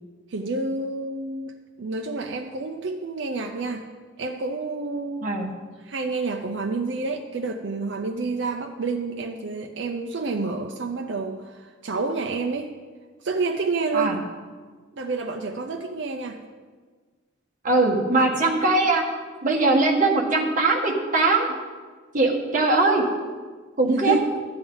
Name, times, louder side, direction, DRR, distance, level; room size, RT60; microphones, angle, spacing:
voice 1, 0.3-1.5 1.8-3.9 4.2-5.3 5.8-12.7 13.2-14.2 15.0-16.4 23.9-24.3, right 3 dB, 65° right, 3 dB, 0.6 m, -29 dB
voice 2, 17.6-19.0 19.4-21.5 22.1-23.1 23.8-24.1, right 3 dB, 40° right, -1 dB, 1.6 m, -21 dB
12.5 x 9.3 x 4.0 m, 1.5 s
head